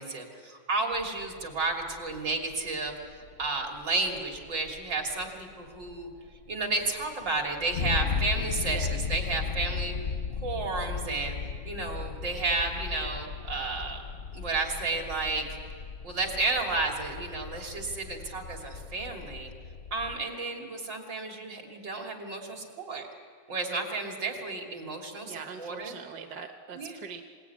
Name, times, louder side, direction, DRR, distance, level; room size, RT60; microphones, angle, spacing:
voice 1, 0.0-2.9 3.4-6.1 6.5-10.0 10.4-11.4 11.6-14.0 14.3-15.6 16.0-19.5 19.9-23.0 23.5-25.9 26.7-27.0, right 3 dB, 85° right, 1 dB, 3.8 m, -32 dB
sound 1, 0.9-20.2, left 6 dB, 55° left, 0.7 m, -36 dB
voice 2, 8.7-9.0 25.2-27.2, right 6 dB, 65° right, 5 dB, 1.7 m, -42 dB
27.5 x 18.0 x 9.6 m, 2.1 s
omnidirectional pair, 1.9 m